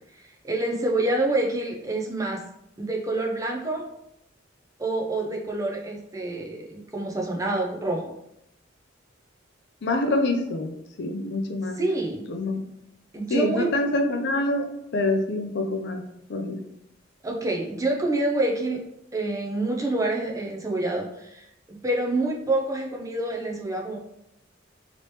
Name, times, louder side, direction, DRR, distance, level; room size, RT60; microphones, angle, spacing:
voice 1, 0.2-2.4 2.8-3.8 4.8-8.1 11.8-12.3 13.1-13.7 17.2-18.8 19.1-24.0, right 2 dB, 15° right, 0 dB, 0.5 m, -27 dB
voice 2, 9.8-11.8 12.3-12.7 13.3-16.0 16.3-16.6, left 2 dB, 60° left, 5 dB, 0.4 m, -26 dB
3.0 x 2.9 x 3.1 m, 0.79 s
head